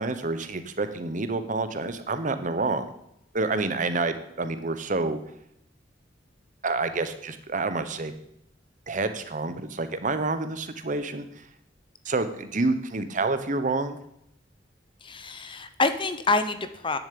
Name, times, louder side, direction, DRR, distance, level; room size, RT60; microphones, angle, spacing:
voice 1, 0.0-2.9 3.3-5.2 6.6-8.1 8.9-11.3 12.0-14.0, right 3 dB, 45° right, 10 dB, 1.0 m, -28 dB
voice 2, 15.0-17.0, left 3 dB, 30° left, 11 dB, 0.8 m, -27 dB
10.5 x 7.2 x 8.5 m, 0.76 s
head